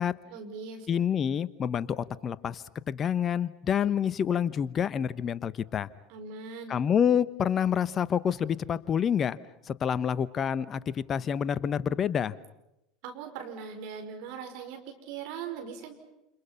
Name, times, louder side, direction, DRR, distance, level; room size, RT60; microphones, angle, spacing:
voice 1, 0.3-0.9 6.1-6.8 13.0-15.9, right 6 dB, 60° right, 5 dB, 5.2 m, -40 dB
voice 2, 0.9-5.9 6.7-9.4 9.6-12.4, left 8 dB, 35° left, 16 dB, 1.1 m, -28 dB
29.0 x 28.5 x 5.9 m, 0.88 s
hypercardioid pair, 80°, 0 cm